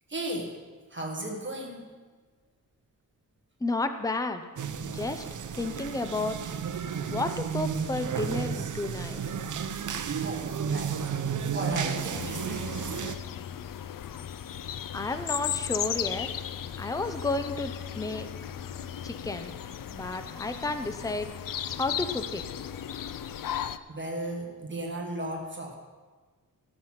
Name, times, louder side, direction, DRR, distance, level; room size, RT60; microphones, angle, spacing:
voice 1, 0.1-0.6 0.9-1.9 10.1-11.0 11.5-12.6 23.9-25.7, right 1 dB, 35° right, 1 dB, 1.5 m, -35 dB
voice 2, 3.6-4.4 4.8-5.2 5.5-6.4 7.1-9.2 14.9-16.3 16.8-18.3 19.0-19.5 19.9-21.3 21.8-22.4, left 3 dB, 10° left, 8 dB, 0.6 m, -32 dB
sound 1, 4.6-13.1, right 7 dB, 60° right, 0.7 m, -32 dB
sound 2, 12.1-23.8, left 9 dB, 70° left, 0.5 m, -36 dB
17.0 x 6.2 x 5.7 m, 1.4 s
wide cardioid pair, 140°, 34 cm